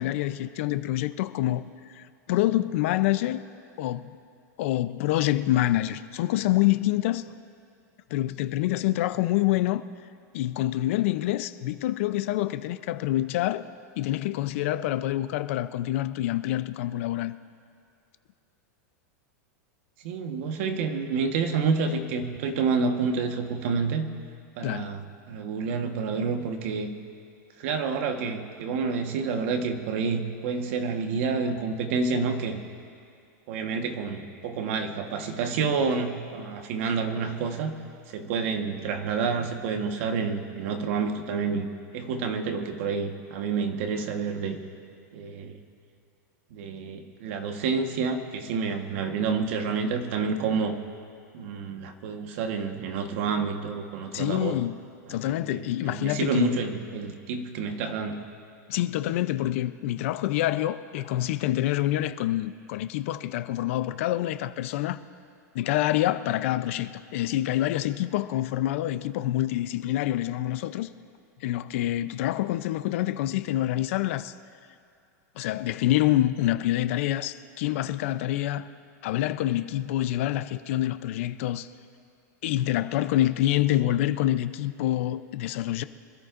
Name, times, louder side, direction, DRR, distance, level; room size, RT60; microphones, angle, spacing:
voice 1, 0.0-1.6 1.9-3.4 3.8-4.1 4.6-7.3 8.1-9.8 10.3-13.6 14.0-17.4 24.6-24.9 54.1-54.8 55.1-56.6 58.7-65.0 65.5-70.9 71.4-74.3 75.4-78.7 79.0-81.7 82.4-85.8, left 14 dB, 45° left, 0.5 m, -26 dB
voice 2, 20.0-24.1 24.6-26.9 27.6-32.6 33.5-37.7 38.1-41.7 41.9-44.6 45.1-45.5 46.5-50.8 51.3-54.6 55.4-58.2, right 5 dB, 45° right, 1.3 m, -29 dB
26.0 x 13.5 x 2.5 m
supercardioid pair, 170°, 9 cm